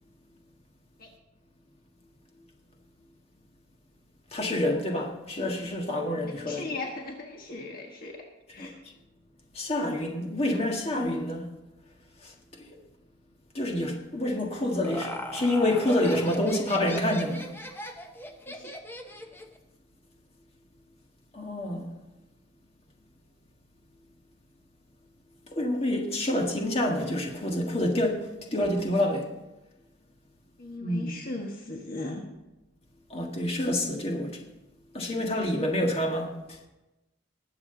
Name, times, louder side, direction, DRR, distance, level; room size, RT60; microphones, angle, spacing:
voice 1, 4.3-6.7 8.6-8.7 9.5-11.5 12.2-12.3 13.5-17.5 21.3-21.9 25.5-29.3 30.8-31.2 33.1-34.4 34.9-36.6, left 1 dB, 30° left, 1.7 m, -28 dB
voice 2, 6.5-8.2 8.5-8.7 18.5-18.7 30.6-32.2, left 2 dB, 50° left, 1.4 m, -38 dB
Laughter, 14.4-19.6, equal, 10° left, 0.9 m, -38 dB
20.5 x 7.8 x 3.9 m
head